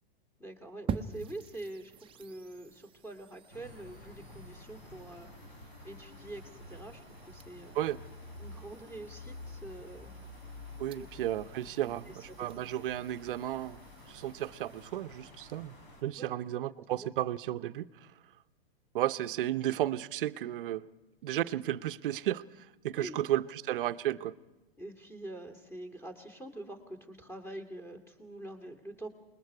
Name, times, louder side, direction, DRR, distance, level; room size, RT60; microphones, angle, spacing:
voice 1, 0.4-1.9 2.2-5.3 5.8-7.8 8.4-10.3 10.9-11.1 11.8-12.6 16.2-16.4 16.9-17.1 23.0-23.3 24.8-29.1, right 1 dB, 10° left, 5 dB, 2.5 m, -45 dB
sound 1, 0.9-14.9, right 6 dB, 20° right, 0.8 m, -47 dB
sound 2, 3.5-16.0, left 2 dB, 60° left, 5.9 m, -50 dB
voice 2, 10.8-13.8 14.1-15.8 16.0-17.9 18.9-20.9 21.2-22.4 22.8-24.3, right 13 dB, 60° right, 13 dB, 0.8 m, -33 dB
27.5 x 20.5 x 4.8 m, 1.1 s
hypercardioid pair, 115°, 30 cm